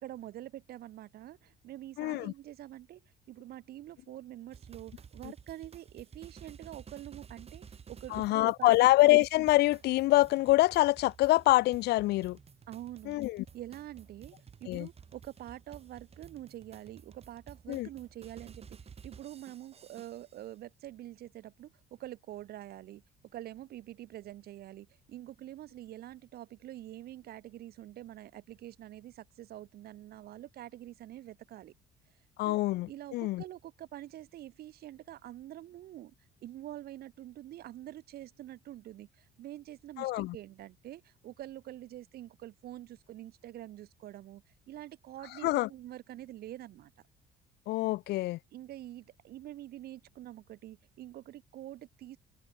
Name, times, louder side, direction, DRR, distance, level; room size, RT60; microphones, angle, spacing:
voice 1, 0.0-8.7 12.7-13.2 13.5-14.4 14.6-18.8 19.0-23.0 23.3-31.7 32.5-32.6 32.9-36.1 36.4-46.9 48.5-52.2, right 13 dB, 65° right, 1.7 m, -46 dB
voice 2, 2.0-2.3 8.1-12.4 13.1-13.4 14.7-14.9 17.7-17.9 32.4-33.4 40.0-40.4 45.4-45.7 47.7-48.4, left 18 dB, 75° left, 0.6 m, -25 dB
sound 1, 4.5-20.4, right 6 dB, 35° right, 7.1 m, -53 dB
cardioid pair, 110°, 17 cm